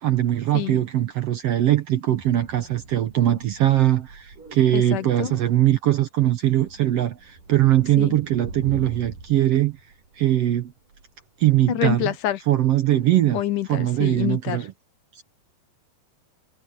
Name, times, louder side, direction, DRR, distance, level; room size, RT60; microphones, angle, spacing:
voice 1, 0.0-9.8 10.2-10.7 11.4-12.1 12.5-13.4 13.7-14.7 15.1-15.2, right 13 dB, 65° right, 1.6 m, -21 dB
sound 1, 2.1-11.7, right 4 dB, 85° right, 9.0 m, -43 dB
voice 2, 4.7-5.4 8.0-8.2 11.7-12.4 13.3-14.6, left 13 dB, 75° left, 2.6 m, -27 dB
omnidirectional pair, 3.7 m